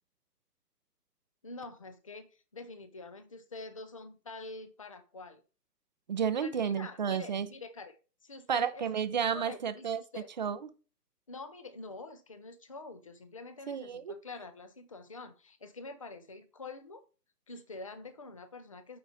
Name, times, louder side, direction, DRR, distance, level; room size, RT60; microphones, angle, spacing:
voice 1, 1.4-5.4 6.4-8.9 9.3-10.3 11.3-17.0 17.5-19.0, left 3 dB, 25° left, 0.4 m, -46 dB
voice 2, 6.1-7.5 8.5-10.6 13.7-14.1, right 7 dB, 30° right, 0.5 m, -32 dB
8.4 x 4.3 x 4.8 m
hypercardioid pair, 140°, 49 cm